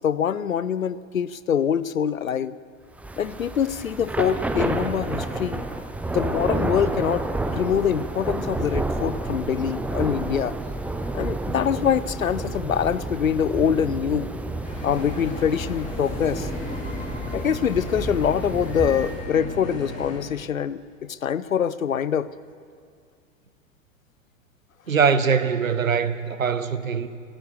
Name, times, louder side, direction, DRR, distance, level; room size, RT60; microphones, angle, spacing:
voice 1, 0.0-2.5 3.2-5.6 6.1-10.6 11.1-14.3 14.8-16.5 17.3-22.3, left 8 dB, 85° left, 0.6 m, -24 dB
Thunder / Rain, 3.0-19.3, right 2 dB, 5° right, 0.6 m, -30 dB
sound 1, 14.6-20.2, left 2 dB, 20° left, 2.9 m, -35 dB
voice 2, 24.9-27.1, right 6 dB, 80° right, 0.9 m, -22 dB
15.0 x 13.5 x 6.9 m
figure-of-eight pair, 90°, 40 cm